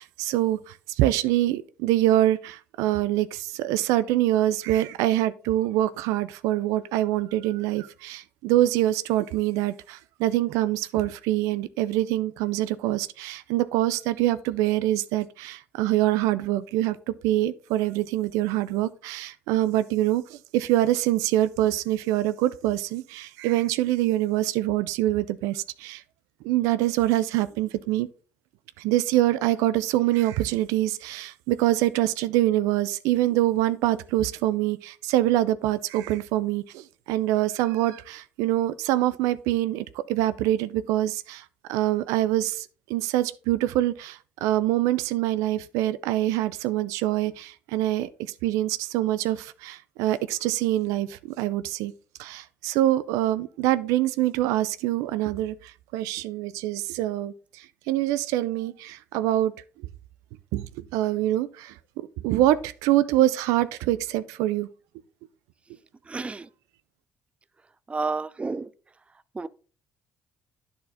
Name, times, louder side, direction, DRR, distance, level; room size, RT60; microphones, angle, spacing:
voice 1, 0.0-17.0 17.2-26.0 26.4-28.1 28.8-51.9 52.2-59.5 60.5-64.7, right 14 dB, 80° right, 0.4 m, -25 dB
voice 2, 66.1-66.5 67.9-68.7 69.3-69.5, right 4 dB, 20° right, 0.5 m, -30 dB
10.0 x 4.3 x 3.8 m
hypercardioid pair, 60°, 5 cm